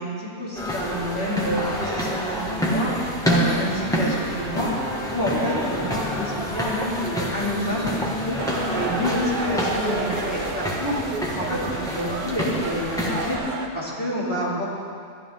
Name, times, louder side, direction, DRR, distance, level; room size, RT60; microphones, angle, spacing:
voice 1, 0.0-4.7 5.0-8.0 8.2-8.4 8.7-11.0 11.4-13.4 13.7-14.6, equal, 65° left, -8 dB, 3.4 m, -28 dB
sound 1, 0.6-13.4, equal, 5° left, 1.6 m, -27 dB
sound 2, 8.4-13.7, right 4 dB, 50° right, 0.8 m, -31 dB
14.5 x 11.5 x 3.6 m, 2.3 s
omnidirectional pair, 1.1 m